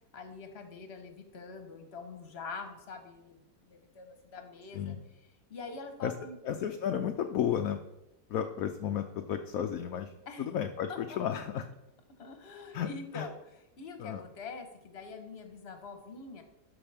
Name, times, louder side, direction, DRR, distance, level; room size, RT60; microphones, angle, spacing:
voice 1, 0.1-5.2 5.5-6.4 10.3-10.5 10.9-11.2 12.2-16.4, left 4 dB, 40° left, 6 dB, 1.3 m, -45 dB
voice 2, 6.4-7.8 8.3-10.1 10.4-11.6 12.7-12.9 13.1-13.3 14.0-14.2, left 9 dB, 65° left, 5 dB, 1.0 m, -33 dB
13.0 x 5.6 x 3.5 m, 0.89 s
omnidirectional pair, 1.8 m